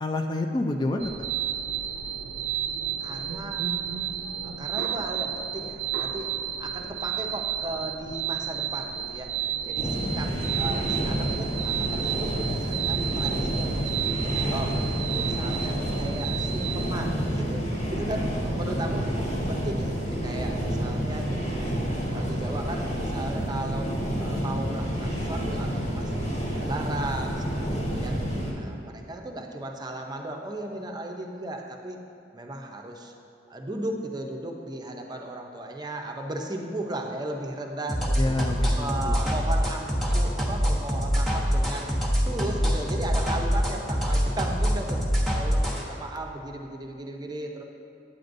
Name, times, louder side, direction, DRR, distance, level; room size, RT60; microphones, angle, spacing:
voice 1, 0.0-1.1 38.2-39.2, left 2 dB, 25° left, 4 dB, 0.3 m, -28 dB
sound 1, 1.0-16.9, right 9 dB, 85° right, 0.4 m, -32 dB
voice 2, 3.0-3.7 4.4-6.3 6.6-9.3 9.6-19.1 19.5-21.8 22.1-26.1 26.6-28.2 28.5-32.0 32.3-33.1 33.5-38.3 38.8-41.9 42.2-47.6, right 1 dB, 25° right, 2 dB, 0.6 m, -36 dB
sound 2, 9.7-28.5, equal, 40° left, 1.4 m, -29 dB
sound 3, 37.9-45.8, equal, ahead, 1.0 m, -24 dB
9.2 x 8.5 x 2.6 m, 2.6 s
head